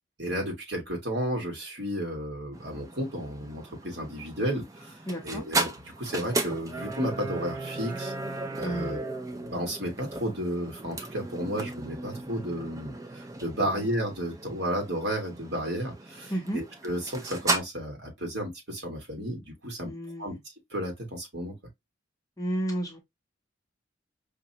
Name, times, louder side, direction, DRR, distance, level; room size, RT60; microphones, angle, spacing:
voice 1, 0.2-5.0 5.2-8.1 8.6-19.9 20.2-20.3 20.7-21.5, equal, 55° right, 1.7 m, -33 dB
sound 1, 2.5-17.6, right 3 dB, 15° right, 0.4 m, -36 dB
voice 2, 5.1-5.4 8.6-9.0 13.6-13.8 16.3-16.6 19.8-20.4 22.4-23.0, right 1 dB, 15° left, 0.7 m, -32 dB
4.9 x 2.2 x 2.7 m
head